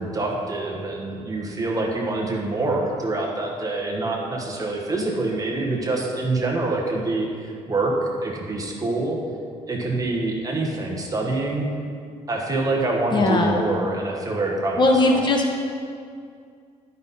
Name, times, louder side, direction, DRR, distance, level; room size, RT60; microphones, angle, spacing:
voice 1, 0.0-9.2 9.7-11.7 12.3-15.2, right 2 dB, 30° right, 0 dB, 1.4 m, -26 dB
voice 2, 13.1-13.6 14.8-15.6, left 2 dB, 40° left, 1 dB, 1.0 m, -19 dB
11.5 x 5.4 x 4.2 m, 2.3 s
cardioid pair, 110°, 13 cm